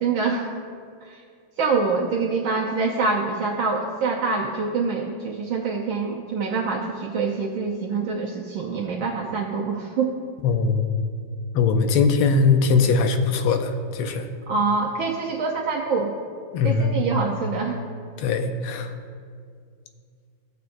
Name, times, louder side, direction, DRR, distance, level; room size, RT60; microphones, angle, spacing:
voice 1, 0.0-0.6 1.1-1.2 1.6-10.1 14.5-16.1 16.6-17.8, right 4 dB, 70° right, -1 dB, 1.4 m, -25 dB
voice 2, 10.4-10.9 11.5-14.3 16.5-17.0 18.2-18.9, left 4 dB, 80° left, 6 dB, 1.6 m, -21 dB
16.5 x 6.6 x 2.6 m, 2.2 s
omnidirectional pair, 2.4 m